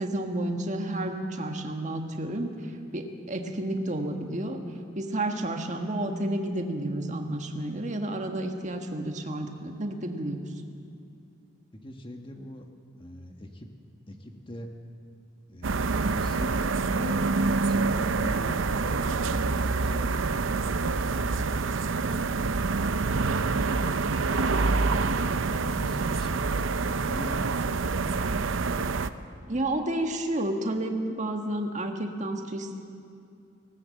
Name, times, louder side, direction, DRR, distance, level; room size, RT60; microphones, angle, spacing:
voice 1, 0.0-2.5 2.9-4.6 4.9-10.5 29.5-32.8, right 1 dB, 40° right, 4 dB, 1.6 m, -31 dB
voice 2, 11.7-12.7 13.0-13.7 14.1-14.7 15.5-16.5 16.9-23.3 23.7-28.1, equal, 25° left, 3 dB, 1.4 m, -43 dB
sound 1, 15.6-29.1, right 4 dB, 85° right, 0.7 m, -26 dB
Screaming, 24.2-24.8 26.2-26.5, left 2 dB, 80° left, 5.9 m, -45 dB
19.0 x 18.0 x 7.7 m, 2.5 s
head